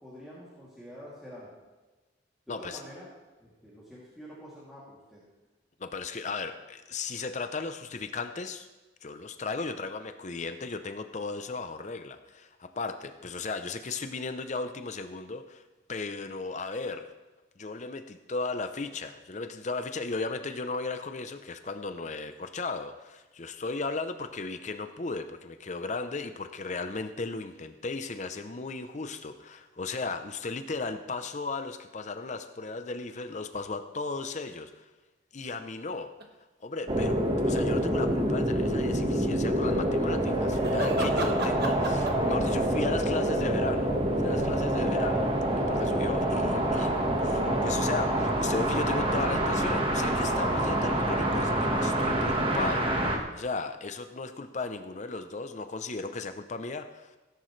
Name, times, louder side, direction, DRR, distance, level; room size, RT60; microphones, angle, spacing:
voice 1, 0.0-1.5 2.5-3.1 3.4-5.2, equal, ahead, -9 dB, 2.7 m, -47 dB
voice 2, 2.5-2.8 5.8-8.7 9.0-15.6 15.9-17.0 17.6-34.9 35.3-36.1 36.6-43.9 44.2-45.3 45.6-46.9 47.2-52.9 53.3-57.2, left 3 dB, 40° left, 8 dB, 0.6 m, -36 dB
sound 1, 36.2-36.3 40.5-42.4 43.4-44.5 45.2-45.3 46.2-46.3 51.1-53.5, right 2 dB, 60° right, 1.5 m, -36 dB
sound 2, 36.9-53.2, right 1 dB, 30° right, 1.4 m, -26 dB
17.5 x 10.5 x 3.2 m, 1.2 s
head